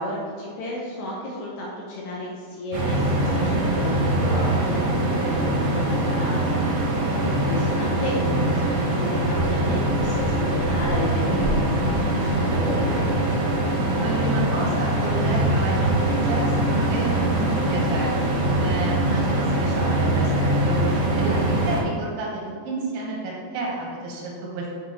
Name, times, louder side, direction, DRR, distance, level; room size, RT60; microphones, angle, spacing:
voice 1, 0.0-13.1 21.3-21.6, left 1 dB, 75° left, -4 dB, 1.7 m, -33 dB
sound 1, 2.7-21.8, right 1 dB, 70° right, 1.4 m, -23 dB
sound 2, 9.2-21.7, left 1 dB, 55° left, 1.9 m, -35 dB
voice 2, 14.0-22.3 22.6-24.8, right 3 dB, 85° right, -3 dB, 2.8 m, -30 dB
7.6 x 3.4 x 4.1 m, 2.1 s
omnidirectional pair, 4.3 m